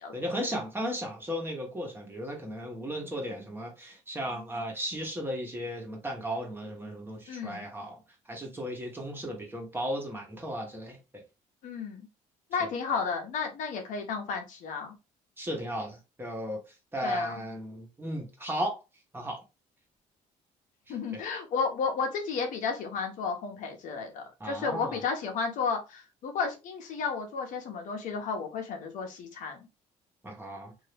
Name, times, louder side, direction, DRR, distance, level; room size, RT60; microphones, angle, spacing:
voice 1, 0.1-8.0 8.3-11.0 15.4-16.6 16.9-18.8 19.1-19.4 20.9-21.2 24.4-25.0 30.2-30.7, equal, 15° right, 1.3 m, -35 dB
voice 2, 7.3-7.6 11.6-12.1 12.5-14.9 17.0-17.4 20.9-29.7, left 5 dB, 75° left, 0.9 m, -33 dB
2.7 x 2.7 x 3.3 m
cardioid pair, 95°, 13 cm